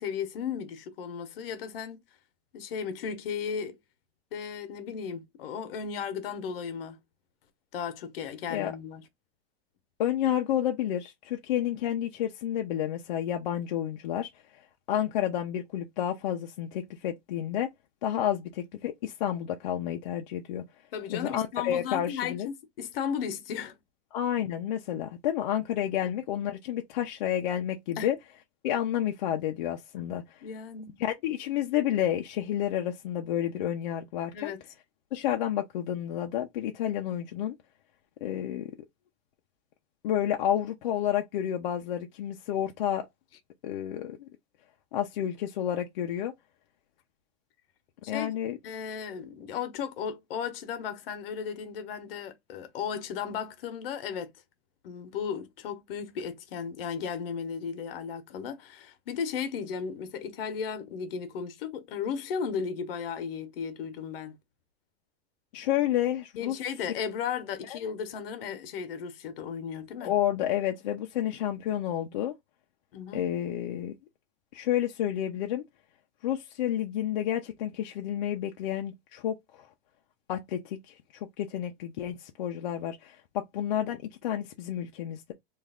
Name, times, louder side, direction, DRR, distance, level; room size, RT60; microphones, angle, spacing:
voice 1, 0.0-2.0 2.5-3.8 4.3-7.0 7.7-9.0 20.9-23.7 26.0-26.1 28.0-28.1 30.4-31.0 34.3-34.6 48.0-48.3 48.6-54.3 54.8-64.4 66.4-70.1 72.9-73.3, left 7 dB, 65° left, 0.9 m, -35 dB
voice 2, 10.0-14.6 14.9-17.7 18.0-20.6 21.1-22.5 24.1-28.2 28.6-30.4 31.0-34.5 35.1-37.5 38.2-38.7 40.0-43.1 43.6-44.3 44.9-46.3 48.1-48.6 65.5-66.6 67.6-67.8 70.0-72.3 73.1-73.9 74.5-75.6 76.2-79.7 80.3-85.3, left 11 dB, 45° left, 0.5 m, -30 dB
3.1 x 2.4 x 3.4 m
supercardioid pair, 175°, 31 cm